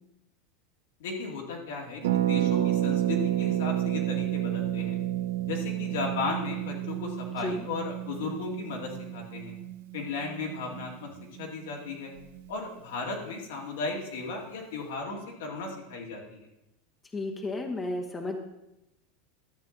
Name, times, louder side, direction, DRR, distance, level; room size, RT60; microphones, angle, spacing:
voice 1, 1.0-5.0 5.5-9.5 9.9-11.1 11.4-12.1 12.5-16.4, left 4 dB, 85° left, 0 dB, 2.3 m, -35 dB
Harp, 2.0-11.7 11.9-12.0 12.2-12.5, right 13 dB, 80° right, 0.7 m, -30 dB
voice 2, 17.1-18.4, left 2 dB, 15° left, 2 dB, 1.0 m, -33 dB
11.5 x 7.6 x 3.9 m, 0.90 s
supercardioid pair, 135°, 0 cm